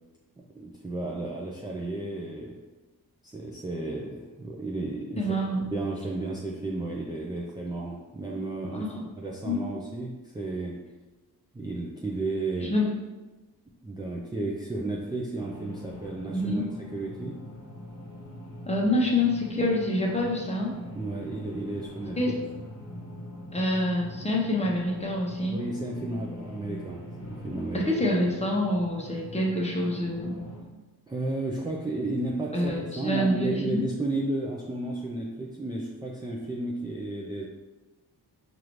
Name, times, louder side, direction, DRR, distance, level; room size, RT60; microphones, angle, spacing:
voice 1, 0.5-2.6 3.2-5.3 5.7-8.9 9.2-10.8 11.5-12.8 13.8-17.4 20.9-22.3 23.6-23.7 25.5-27.9 31.1-37.5, right 2 dB, 10° right, -3 dB, 0.5 m, -33 dB
voice 2, 5.2-5.6 8.7-9.0 9.4-9.8 12.6-12.9 16.3-16.7 18.6-20.7 22.2-22.3 23.5-25.6 27.7-30.4 32.5-33.9, left 1 dB, 15° left, -2 dB, 0.9 m, -26 dB
sound 1, 15.4-30.6, left 1 dB, 35° left, 1.2 m, -42 dB
4.8 x 2.6 x 3.0 m, 1.2 s
cardioid pair, 75°, 38 cm